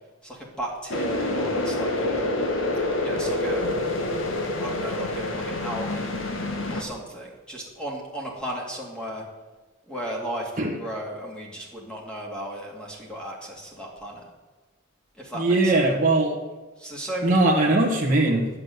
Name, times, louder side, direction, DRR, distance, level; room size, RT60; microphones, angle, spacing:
voice 1, 0.2-2.2 3.0-3.7 4.6-6.1 6.7-9.2 9.9-14.2 15.2-15.9 16.8-17.4, right 1 dB, 5° left, -2 dB, 2.5 m, -35 dB
sound 1, 0.9-6.8, left 2 dB, 85° left, 1.7 m, -27 dB
voice 2, 15.3-16.4 17.2-18.5, right 2 dB, 40° right, -3 dB, 1.6 m, -20 dB
9.6 x 7.6 x 9.3 m, 1.2 s
head